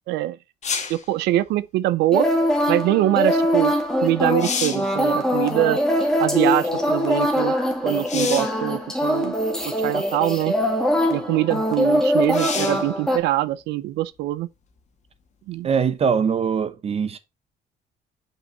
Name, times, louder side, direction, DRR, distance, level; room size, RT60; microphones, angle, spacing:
sound 1, 0.6-1.1 3.7-3.8 4.2-4.9 8.1-8.6 9.6-9.7 12.3-12.9 16.5-16.6, left 6 dB, 45° left, 1.7 m, -28 dB
voice 1, 0.9-2.3 2.7-3.7 4.0-5.8 6.2-7.5 7.8-9.3 9.6-10.5 11.1-14.5 15.5-15.7, right 15 dB, 85° right, 0.6 m, -23 dB
sound 2, 2.1-13.2, equal, 5° left, 2.1 m, -22 dB
voice 2, 15.6-17.2, right 6 dB, 35° right, 0.8 m, -22 dB
5.7 x 5.6 x 3.9 m
cardioid pair, 110°, 17 cm